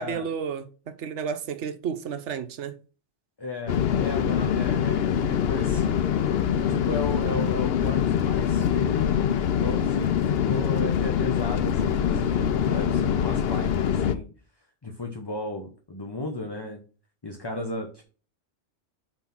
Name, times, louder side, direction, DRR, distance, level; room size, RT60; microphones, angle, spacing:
voice 1, 0.0-2.8, right 7 dB, 75° right, 1.0 m, -32 dB
voice 2, 3.4-6.0 6.7-14.3 14.8-16.8 17.2-18.0, left 2 dB, 25° left, 0.9 m, -35 dB
sound 1, 3.7-14.1, left 8 dB, 60° left, 0.8 m, -24 dB
5.7 x 4.5 x 5.8 m
omnidirectional pair, 1.2 m